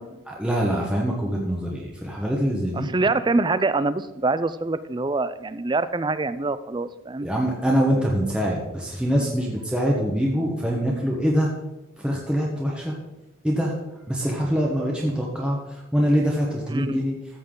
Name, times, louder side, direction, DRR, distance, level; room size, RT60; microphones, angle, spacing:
voice 1, 0.3-2.9 7.2-11.5 12.0-12.9 13.4-13.8 14.1-17.2, equal, 5° right, -3 dB, 1.2 m, -24 dB
voice 2, 2.7-7.3 16.7-17.0, right 3 dB, 20° right, 14 dB, 0.4 m, -25 dB
13.5 x 8.0 x 3.8 m, 1.0 s
head